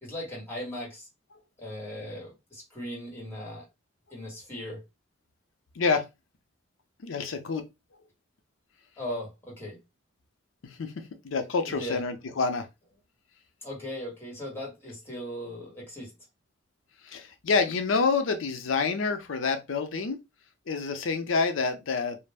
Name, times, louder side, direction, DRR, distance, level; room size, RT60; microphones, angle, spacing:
voice 1, 0.0-1.1 1.6-3.6 4.1-4.8 9.0-9.8 11.7-12.0 13.6-16.1, left 1 dB, 10° left, 1.3 m, -38 dB
voice 2, 7.0-7.6 10.6-12.7 17.0-20.2 20.7-22.3, left 4 dB, 80° left, 0.5 m, -28 dB
2.4 x 2.0 x 3.3 m
head